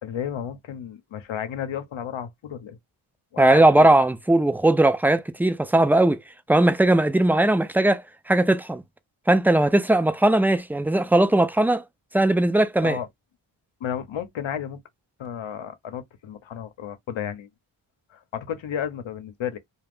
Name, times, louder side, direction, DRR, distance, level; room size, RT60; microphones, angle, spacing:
voice 1, 0.0-2.8 3.3-3.9 12.8-13.1 13.8-14.8 15.2-17.5 18.1-19.6, left 9 dB, 75° left, 0.8 m, -32 dB
voice 2, 3.4-6.2 6.5-8.0 8.3-8.8 9.3-11.8 12.1-13.0, right 1 dB, 5° right, 0.4 m, -19 dB
2.5 x 2.1 x 3.5 m
cardioid pair, 55°, 47 cm